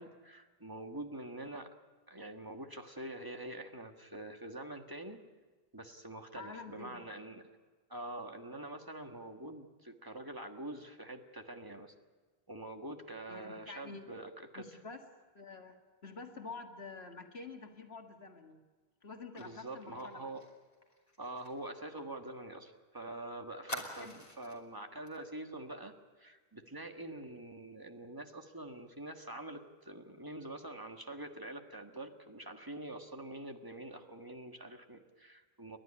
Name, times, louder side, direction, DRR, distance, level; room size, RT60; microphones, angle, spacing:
voice 1, 0.0-1.7 2.1-5.2 5.7-7.5 7.9-11.9 12.5-14.6 19.4-20.4 21.2-35.8, right 1 dB, 20° right, 4 dB, 1.6 m, -45 dB
voice 2, 6.4-7.0 13.3-14.1 14.5-15.0 15.3-18.6 19.0-20.3 21.9-22.1 24.0-24.2, left 4 dB, 70° left, 3 dB, 2.1 m, -48 dB
Fire, 19.4-22.8 23.1-23.2 23.7-24.6 25.1-25.2 25.5-25.8, left 1 dB, 35° left, 3.2 m, -47 dB
29.5 x 11.5 x 9.9 m, 1.4 s
omnidirectional pair, 1.1 m